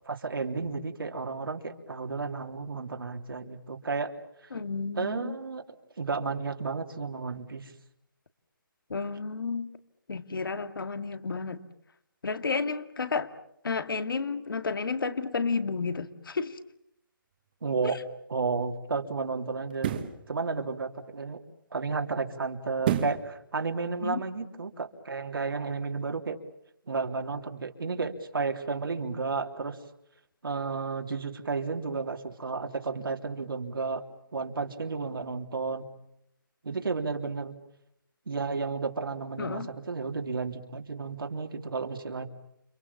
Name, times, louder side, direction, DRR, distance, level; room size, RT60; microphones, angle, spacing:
voice 1, 0.1-4.1 5.0-5.6 6.0-7.7 17.6-18.0 18.3-19.9 20.3-21.4 21.7-26.4 26.9-29.8 30.4-34.0 34.3-35.9 36.6-37.6 38.3-42.3, right 4 dB, 80° right, 3 dB, 3.5 m, -32 dB
voice 2, 4.5-5.4 8.9-9.7 10.1-11.6 12.2-13.3 13.6-16.6 17.8-18.0 24.0-24.2 39.4-39.7, left 4 dB, 75° left, 10 dB, 2.2 m, -31 dB
sound 1, 17.8-18.0 19.7-20.2 22.8-23.3 23.7-23.8, right 9 dB, 25° right, 1.5 m, -28 dB
29.5 x 27.0 x 7.2 m, 0.74 s
hypercardioid pair, 170°, 12 cm